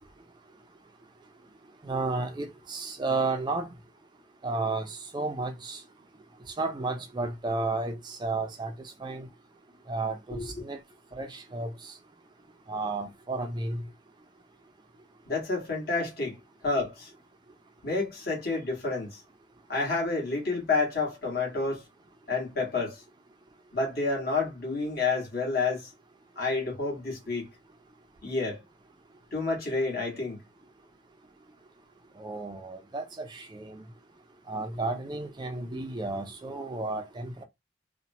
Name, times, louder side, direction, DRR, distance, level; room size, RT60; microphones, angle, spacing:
voice 1, 1.8-3.7 4.4-5.8 6.6-8.7 9.0-9.3 9.9-10.8 11.2-11.9 12.7-13.8 32.2-33.8 34.5-37.4, right 3 dB, 25° right, 0.3 m, -32 dB
voice 2, 15.3-16.4 16.6-17.1 17.8-19.2 19.7-21.8 22.3-23.0 23.7-25.9 26.4-27.5 28.2-28.6 29.3-30.4, left 3 dB, 55° left, 1.4 m, -29 dB
2.9 x 2.1 x 2.6 m
head